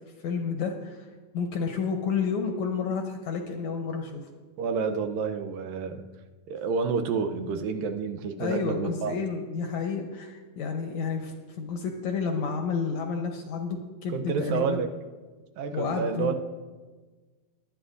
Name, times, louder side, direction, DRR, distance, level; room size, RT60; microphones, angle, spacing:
voice 1, 0.2-1.0 1.3-4.2 8.4-14.8 15.7-16.4, left 5 dB, 70° left, 3 dB, 1.9 m, -30 dB
voice 2, 4.6-6.0 6.5-9.2 14.1-14.9 15.6-16.4, right 5 dB, 85° right, 6 dB, 2.5 m, -29 dB
19.0 x 11.0 x 2.6 m, 1.3 s
omnidirectional pair, 3.9 m